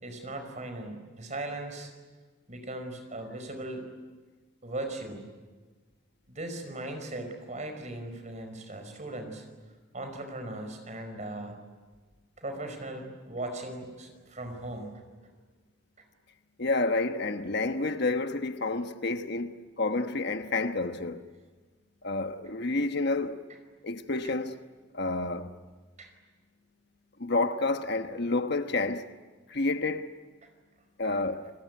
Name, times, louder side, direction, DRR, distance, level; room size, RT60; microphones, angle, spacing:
voice 1, 0.0-1.9 2.5-3.8 4.6-5.3 6.3-9.4 9.9-11.6 12.4-15.0 26.0-26.1, right 2 dB, 35° right, 5.1 m, -38 dB
voice 2, 16.6-21.2 22.0-23.4 23.8-24.6 24.9-25.5 27.2-29.1 29.5-30.1 31.0-31.5, left 3 dB, 55° left, 1.2 m, -29 dB
29.5 x 20.5 x 9.5 m
head